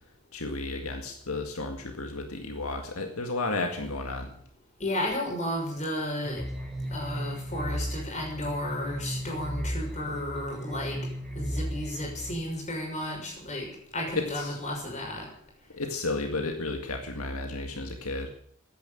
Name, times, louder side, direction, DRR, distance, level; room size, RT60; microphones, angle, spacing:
voice 1, 0.3-4.4 14.2-14.6 15.7-18.3, left 2 dB, 75° left, 4 dB, 2.0 m, -33 dB
voice 2, 4.8-6.4 6.9-11.0 11.3-13.7 13.9-15.3, left 1 dB, 30° left, 1 dB, 6.1 m, -33 dB
sound 1, 6.2-12.3, equal, ahead, 4.6 m, -35 dB
15.0 x 10.5 x 9.1 m, 0.64 s
head